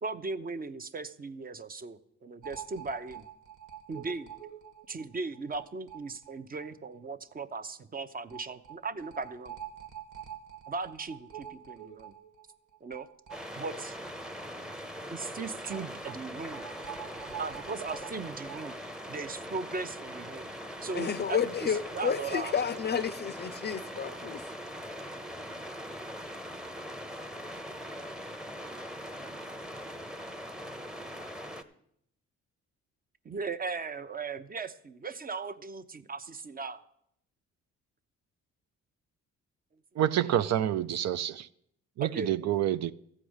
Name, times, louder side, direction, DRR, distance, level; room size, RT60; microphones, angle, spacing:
voice 1, 0.0-3.2 3.9-4.3 4.9-9.6 10.7-12.1 12.8-13.1 13.6-13.9 15.1-16.6 17.4-18.7 19.1-22.5 33.2-36.8 42.0-42.8, right 4 dB, 30° right, 0.7 m, -38 dB
sound 1, 2.4-6.7 7.0-7.1 7.3-7.4 8.3-14.1 14.3-14.4 15.7-18.7, right 9 dB, 80° right, 1.6 m, -46 dB
sound 2, 13.3-31.6, equal, ahead, 0.8 m, -41 dB
voice 2, 20.9-24.4, left 7 dB, 35° left, 0.5 m, -31 dB
voice 3, 40.0-41.5 42.0-42.9, right 11 dB, 60° right, 0.5 m, -28 dB
14.0 x 4.9 x 8.0 m
cardioid pair, 90°, 30 cm